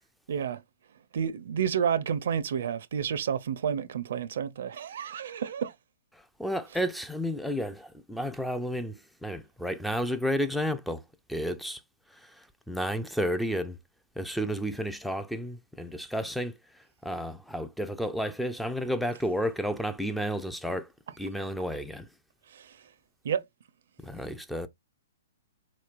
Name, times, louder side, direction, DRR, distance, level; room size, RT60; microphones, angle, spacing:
voice 1, 0.3-0.6 1.1-5.7 22.5-22.8 23.2-23.4, right 8 dB, 60° right, 0.5 m, -30 dB
voice 2, 6.1-11.0 11.3-11.8 12.1-13.8 14.2-20.9 21.2-22.1 24.0-24.7, equal, ahead, 0.4 m, -32 dB
4.3 x 3.1 x 2.4 m
figure-of-eight pair, 120°, 0 cm